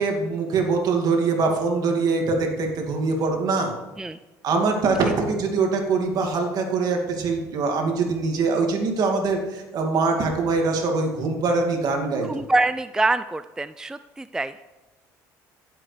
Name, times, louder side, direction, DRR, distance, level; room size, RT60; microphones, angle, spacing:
voice 1, 0.0-3.7 4.4-12.4, right 4 dB, 55° right, 2 dB, 2.3 m, -23 dB
voice 2, 12.2-14.5, right 2 dB, 10° right, 12 dB, 0.3 m, -25 dB
17.0 x 7.7 x 3.4 m, 1.2 s
supercardioid pair, 75°, 8 cm